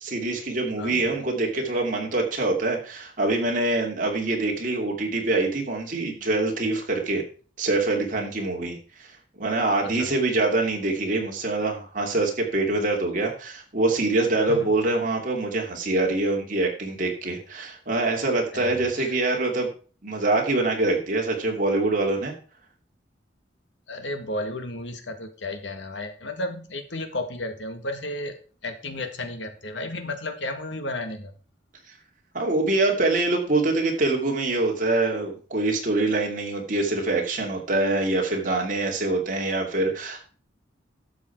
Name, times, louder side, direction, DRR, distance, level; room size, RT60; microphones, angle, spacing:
voice 1, 0.0-7.2 7.6-9.1 9.4-19.7 20.0-22.3 32.3-40.2, right 2 dB, 45° right, 1 dB, 2.9 m, -24 dB
voice 2, 0.8-1.1 9.8-10.1 14.5-14.7 18.5-19.2 23.9-28.3 28.6-31.3, left 1 dB, 75° left, 7 dB, 1.8 m, -33 dB
12.0 x 7.3 x 4.7 m, 0.39 s
head